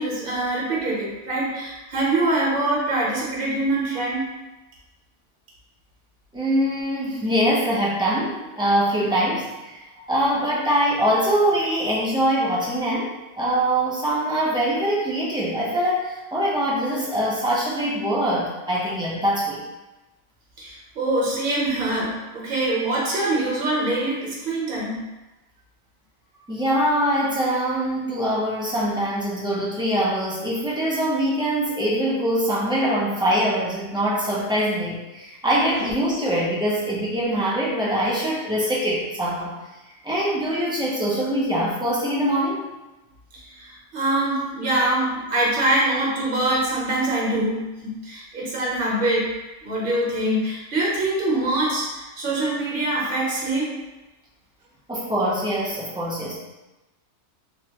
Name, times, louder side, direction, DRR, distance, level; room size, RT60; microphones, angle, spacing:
voice 1, 0.0-4.4 20.6-25.1 35.6-35.8 43.3-53.8, right 2 dB, 50° right, -5 dB, 1.0 m, -24 dB
voice 2, 6.3-19.6 26.5-39.5 40.0-42.6 54.9-56.4, equal, 10° right, -7 dB, 0.3 m, -23 dB
3.5 x 2.1 x 2.8 m, 1.1 s
omnidirectional pair, 1.2 m